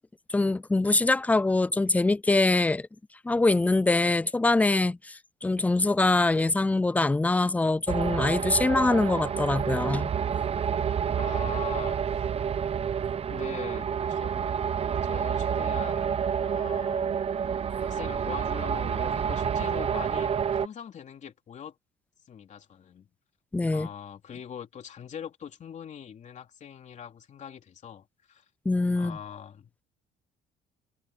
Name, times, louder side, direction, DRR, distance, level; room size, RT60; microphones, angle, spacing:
voice 1, 0.3-2.9 3.2-10.1 23.5-23.9 28.7-29.2, left 2 dB, 10° left, 0.5 m, -24 dB
sound 1, 7.9-20.7, right 7 dB, 35° right, 0.9 m, -29 dB
voice 2, 11.2-12.2 13.2-14.3 14.8-17.1 17.8-21.8 22.3-23.1 23.7-28.4 28.9-29.7, left 8 dB, 45° left, 3.2 m, -42 dB
cardioid pair, 110°, 17 cm